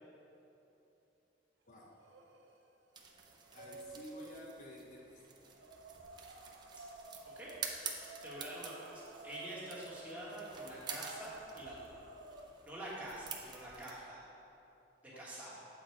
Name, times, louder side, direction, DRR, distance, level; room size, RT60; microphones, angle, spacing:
sound 1, 2.0-2.6 2.9-4.8 5.5-12.7, right 2 dB, 85° right, 0.6 m, -53 dB
sound 2, 2.9-13.9, right 5 dB, 25° right, 0.5 m, -49 dB
voice 1, 3.5-5.2 15.1-15.2, left 1 dB, 45° left, -3 dB, 0.7 m, -51 dB
voice 2, 8.2-12.0 12.6-14.2 15.2-15.5, right 1 dB, 10° right, -8 dB, 1.4 m, -46 dB
7.9 x 4.1 x 4.6 m, 3.0 s
head